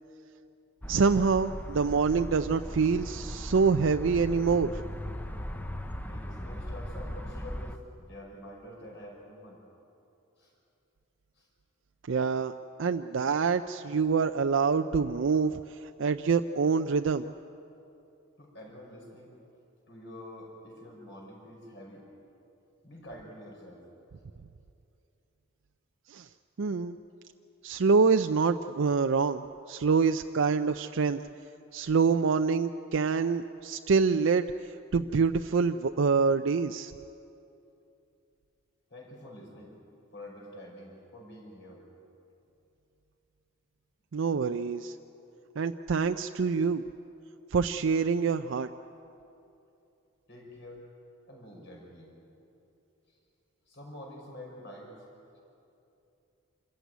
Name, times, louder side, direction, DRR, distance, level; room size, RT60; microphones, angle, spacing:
sound 1, 0.8-7.8, equal, 10° left, 0.8 m, -38 dB
voice 1, 0.9-4.8 12.1-12.5 12.8-15.6 16.0-17.3 26.1-26.3 26.6-27.0 27.6-29.4 29.7-31.2 31.7-34.5 34.9-36.9 44.1-44.9 45.6-46.8 47.5-48.7, right 5 dB, 65° right, 8 dB, 0.5 m, -26 dB
voice 2, 6.0-9.6 10.4-10.5 11.3-11.5 18.4-19.3 19.9-22.1 22.8-23.8 38.9-39.7 40.1-41.8 50.3-50.8 51.3-52.1 53.1-53.2 53.7-54.9, left 1 dB, 55° left, -1 dB, 5.6 m, -47 dB
26.5 x 14.5 x 9.3 m, 2.8 s
head